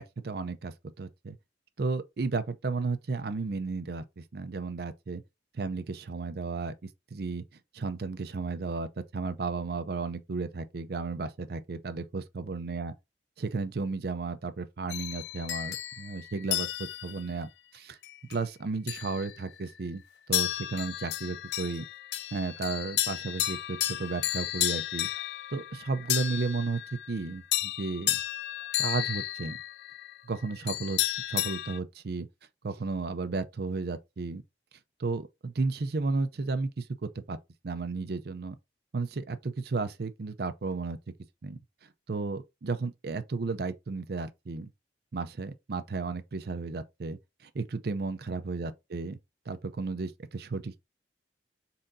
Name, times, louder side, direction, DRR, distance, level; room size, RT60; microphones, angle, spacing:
voice 1, 0.0-1.4 1.8-5.2 5.5-6.7 7.1-7.4 7.7-12.9 13.4-16.7 17.0-18.0 18.3-20.0 20.3-21.8 22.3-25.1 25.5-26.8 27.1-27.4 27.8-28.2 28.8-29.5 30.2-31.0 31.3-32.3 32.6-34.4 35.0-37.4 37.6-38.6 38.9-41.0 41.4-41.6 42.1-44.7 45.1-49.2 49.5-50.8, right 4 dB, 60° right, 0.5 m, -33 dB
sound 1, 14.9-17.2 18.0-18.4 18.9-19.7 20.3-31.8, left 14 dB, 65° left, 0.3 m, -33 dB
4.2 x 3.7 x 2.6 m
head